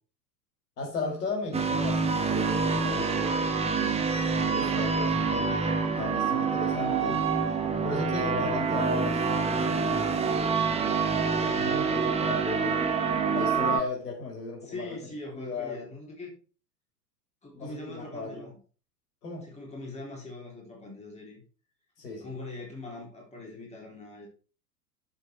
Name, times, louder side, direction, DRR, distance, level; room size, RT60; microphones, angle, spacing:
voice 1, 0.8-3.5 4.4-7.3 7.8-10.2 11.3-12.9 13.3-15.0 15.3-15.8 17.5-18.5 19.2-19.5 22.0-22.3, left 3 dB, 65° left, 1 dB, 4.2 m, -36 dB
sound 1, 1.5-13.8, right 5 dB, 10° right, 1.1 m, -26 dB
voice 2, 14.6-16.3 17.4-18.6 19.4-21.4 22.2-24.3, left 2 dB, 15° left, -1 dB, 3.6 m, -42 dB
7.7 x 7.4 x 4.5 m, 0.37 s
figure-of-eight pair, 90°, 50 cm